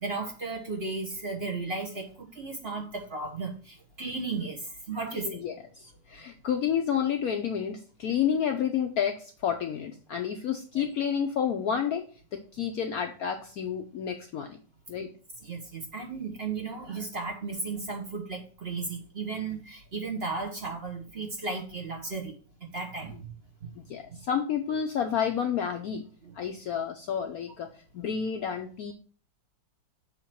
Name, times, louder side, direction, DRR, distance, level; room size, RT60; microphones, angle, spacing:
voice 1, 0.0-5.4 10.7-10.8 15.4-23.3 23.6-23.7 26.2-26.3, right 3 dB, 35° right, 0 dB, 1.2 m, -35 dB
voice 2, 5.4-12.0 12.3-14.6 14.9-15.1 23.9-26.0 26.4-27.7 27.9-28.9, left 8 dB, 70° left, 5 dB, 0.9 m, -30 dB
7.1 x 3.0 x 5.8 m, 0.40 s
omnidirectional pair, 2.1 m